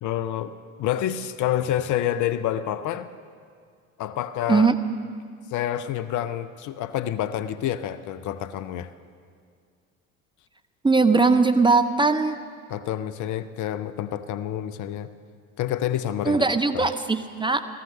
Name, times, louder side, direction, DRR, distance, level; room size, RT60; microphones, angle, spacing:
voice 1, 0.0-3.1 4.0-4.7 5.5-8.9 12.7-15.1 15.6-16.4 16.7-16.9, left 11 dB, 50° left, 14 dB, 0.7 m, -28 dB
voice 2, 10.8-12.4 16.3-17.7, right 4 dB, 10° right, 9 dB, 0.7 m, -20 dB
17.0 x 15.0 x 5.3 m, 2.1 s
hypercardioid pair, 65°, 39 cm